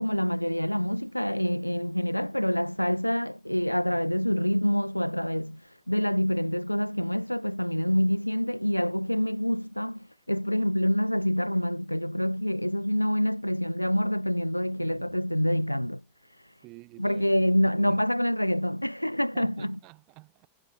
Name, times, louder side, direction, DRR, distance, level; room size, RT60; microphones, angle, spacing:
voice 1, 0.0-16.0 16.4-16.5 17.0-19.7, equal, 90° left, 0.4 m, -26 dB
voice 2, 14.8-15.2 16.6-18.1 19.3-20.5, right 26 dB, 40° right, 4.9 m, -49 dB
figure-of-eight pair, 90°, 0 cm